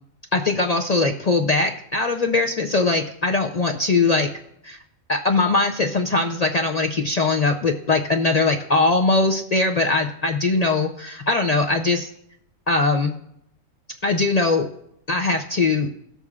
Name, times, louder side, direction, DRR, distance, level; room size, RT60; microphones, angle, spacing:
voice 1, 0.3-4.3 4.6-4.8 5.1-12.1 12.7-13.2 14.0-14.7 15.1-15.9, left 3 dB, 55° left, 3 dB, 0.4 m, -21 dB
17.5 x 6.9 x 2.4 m, 0.75 s
omnidirectional pair, 1.4 m